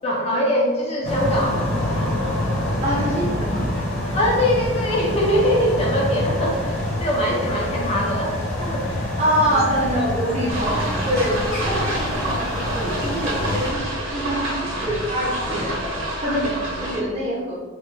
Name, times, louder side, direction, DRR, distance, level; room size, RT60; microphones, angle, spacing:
voice 1, 0.0-2.1 4.1-9.1 9.5-9.6, equal, 30° left, -3 dB, 0.4 m, -23 dB
sound 1, 1.0-13.7, left 1 dB, 55° left, 0.8 m, -26 dB
voice 2, 2.8-3.6 9.2-13.8 14.1-15.8 16.2-17.6, equal, 30° right, -5 dB, 0.7 m, -25 dB
sound 2, 10.5-17.0, right 1 dB, 65° right, 0.8 m, -28 dB
3.1 x 2.1 x 3.1 m, 1.4 s
head